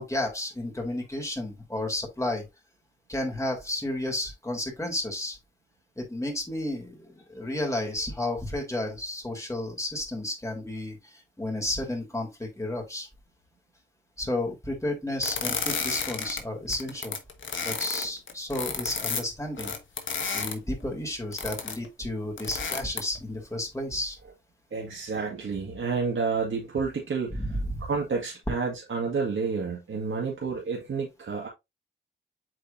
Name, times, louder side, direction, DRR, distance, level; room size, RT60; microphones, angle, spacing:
voice 1, 0.0-2.4 3.1-5.4 6.0-13.1 14.2-17.2 17.6-19.7 20.3-24.2 27.3-27.8, left 1 dB, 15° left, 3.7 m, -32 dB
sound 1, 15.2-16.4 16.7-20.5 21.3-21.9 22.4-23.2, left 5 dB, 75° left, 1.4 m, -31 dB
voice 2, 24.7-27.4 27.9-31.5, right 5 dB, 75° right, 1.9 m, -30 dB
7.6 x 5.0 x 2.7 m
cardioid pair, 65°, 20 cm